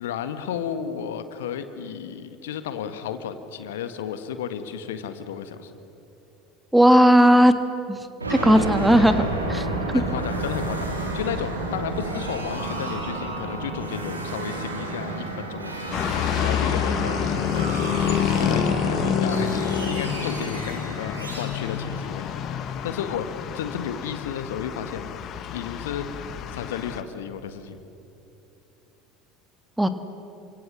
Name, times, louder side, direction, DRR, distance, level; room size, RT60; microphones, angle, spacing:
voice 1, 0.0-5.7 9.0-9.2 9.9-25.1 25.5-27.8, left 8 dB, 65° left, 10 dB, 1.6 m, -33 dB
voice 2, 6.7-7.5 7.9-9.3 9.5-9.6 29.8-29.9, equal, 5° right, 9 dB, 1.7 m, -16 dB
sound 1, 8.2-22.9, right 2 dB, 80° right, 3.8 m, -31 dB
sound 2, 15.9-27.0, left 8 dB, 45° left, 1.7 m, -27 dB
29.0 x 25.5 x 7.6 m, 2.8 s
figure-of-eight pair, 70°, 0 cm